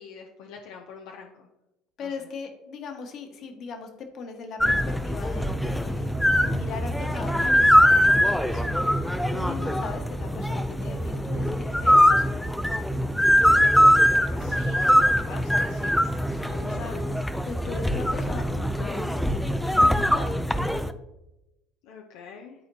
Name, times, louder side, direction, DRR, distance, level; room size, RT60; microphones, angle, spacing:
voice 1, 0.0-1.5 2.0-2.1 13.8-15.9 16.5-17.1 21.8-22.5, left 6 dB, 75° left, 1 dB, 0.8 m, -44 dB
voice 2, 2.0-8.9 9.3-12.5 16.3-16.9 17.4-19.4 19.7-20.4, left 4 dB, 50° left, 4 dB, 1.5 m, -39 dB
sound 1, 4.6-20.9, equal, 5° left, 0.5 m, -22 dB
11.5 x 4.3 x 2.8 m, 0.93 s
supercardioid pair, 100°, 0 cm